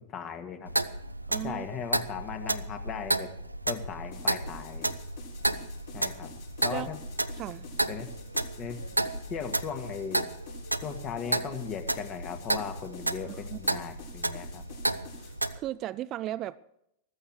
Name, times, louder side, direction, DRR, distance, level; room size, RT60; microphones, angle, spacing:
voice 1, 0.1-0.7 1.4-3.3 3.7-4.9 5.9-6.3 6.6-7.0 7.9-8.1 8.6-8.8 9.3-10.3 10.8-14.6, left 7 dB, 30° left, 1.9 m, -37 dB
Clock, 0.7-15.6, right 2 dB, 85° right, 0.6 m, -32 dB
voice 2, 1.3-1.7 6.7-6.9 7.3-7.7 13.3-13.6 15.1-16.6, right 13 dB, 35° right, 0.4 m, -36 dB
sound 1, 4.1-15.4, left 5 dB, 55° left, 6.3 m, -50 dB
14.5 x 14.0 x 4.8 m
figure-of-eight pair, 90°, 0 cm